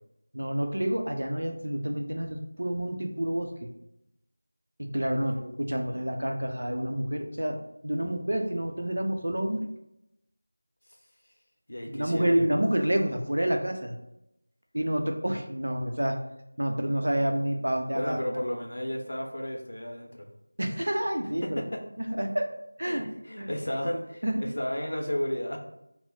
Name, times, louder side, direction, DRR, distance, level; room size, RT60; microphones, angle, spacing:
voice 1, 0.3-3.7 4.8-7.6 7.8-9.6 11.9-14.0 14.7-16.2 16.6-18.2 20.6-21.6 22.0-22.5 22.8-23.1 23.4-23.5 24.2-24.4, right 1 dB, 75° right, 4 dB, 0.6 m, -28 dB
voice 2, 11.7-12.4 17.9-20.3 21.4-21.6 22.8-25.6, equal, 65° left, 1 dB, 0.7 m, -33 dB
3.0 x 2.0 x 4.0 m, 0.84 s
figure-of-eight pair, 175°, 0 cm